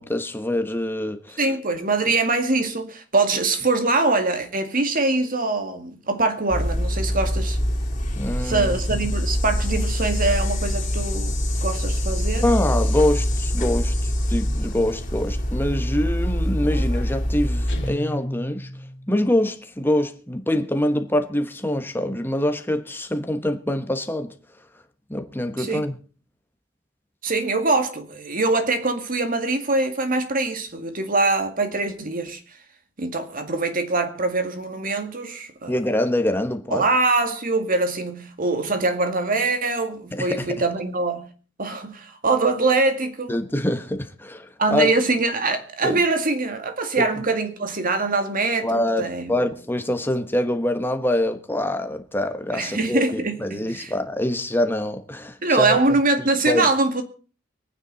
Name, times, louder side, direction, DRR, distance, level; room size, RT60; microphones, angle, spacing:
voice 1, 0.0-1.4 8.2-9.1 12.4-18.7 19.1-24.3 25.1-26.0 35.7-36.9 40.1-40.6 43.3-44.9 45.8-46.0 47.0-47.2 48.6-55.8 56.5-56.7, left 1 dB, 10° left, 1.3 m, -25 dB
voice 2, 1.4-7.6 8.4-12.5 25.6-25.8 27.2-32.4 33.0-35.8 36.7-41.3 41.6-43.4 44.6-49.3 52.5-53.9 55.4-57.0, right 3 dB, 45° right, 2.1 m, -23 dB
sound 1, 6.5-17.9, equal, 45° left, 3.4 m, -24 dB
Guitar, 17.7-19.4, equal, 65° left, 2.6 m, -35 dB
24.0 x 9.4 x 4.0 m
head